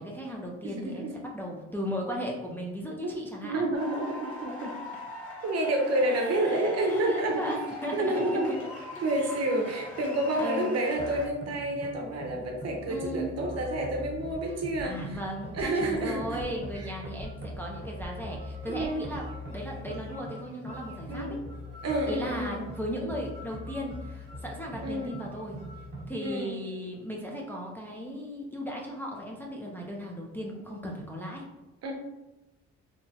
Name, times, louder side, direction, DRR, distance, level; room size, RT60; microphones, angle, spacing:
voice 1, 0.0-1.1 1.3-3.7 6.0-8.6 9.0-9.3 10.0-10.1 10.3-11.0 12.9-13.4 14.8-19.2 19.5-21.4 22.1-25.6 26.1-31.4, equal, 5° left, -2 dB, 0.4 m, -37 dB
voice 2, 0.6-1.2 3.0-3.1 3.4-4.8 5.4-7.6 7.9-8.6 9.0-15.2 15.5-16.4 16.8-16.9 18.7-19.0 21.1-21.3 21.8-22.7 24.8-25.2 26.2-26.5 31.8-31.9, right 1 dB, 55° right, 2 dB, 0.6 m, -29 dB
sound 1, 3.7-11.3, equal, 50° left, 1.2 m, -41 dB
sound 2, 11.0-26.1, left 1 dB, 35° right, 1.0 m, -42 dB
sound 3, 14.3-14.4 14.7-15.2 15.6-16.0 16.4-16.8 17.2-17.6 18.0-18.4 18.8-19.2, right 1 dB, 85° left, 1.0 m, -47 dB
2.8 x 2.1 x 2.7 m, 1.0 s
cardioid pair, 90°, 30 cm